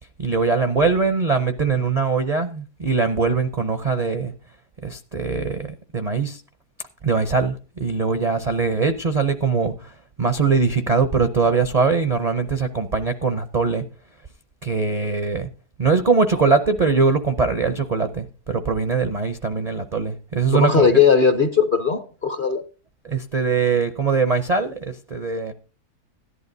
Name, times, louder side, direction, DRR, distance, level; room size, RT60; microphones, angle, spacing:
voice 1, 0.2-4.3 4.8-5.7 5.9-6.4 7.0-9.9 10.2-13.8 14.6-15.5 15.8-20.9 23.0-25.5, right 4 dB, 50° right, 0.4 m, -21 dB
voice 2, 20.5-22.6, left 6 dB, 45° left, 0.7 m, -18 dB
17.0 x 11.0 x 2.7 m
omnidirectional pair, 1.6 m